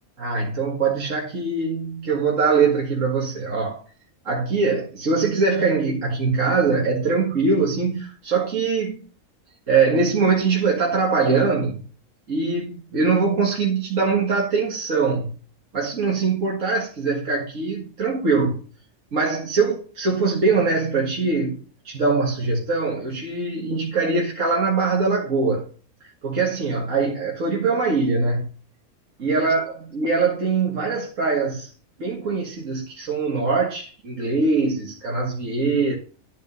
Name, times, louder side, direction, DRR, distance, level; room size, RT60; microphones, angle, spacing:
voice 1, 0.2-3.8 4.2-9.0 9.7-11.8 12.3-15.4 15.7-18.6 19.1-25.7 26.0-28.5 29.2-31.7 32.0-35.9, right 4 dB, 65° right, 2.1 m, -22 dB
11.5 x 5.4 x 5.4 m
omnidirectional pair, 1.4 m